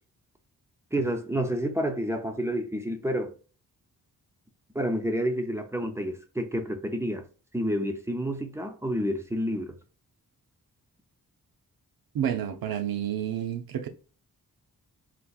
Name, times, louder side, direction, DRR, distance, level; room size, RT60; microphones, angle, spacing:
voice 1, 0.9-3.3 4.7-7.3 7.5-9.7, equal, 10° right, 0.4 m, -29 dB
voice 2, 12.1-13.9, right 10 dB, 75° right, 0.6 m, -30 dB
4.1 x 2.5 x 2.3 m
wide cardioid pair, 125°, 36 cm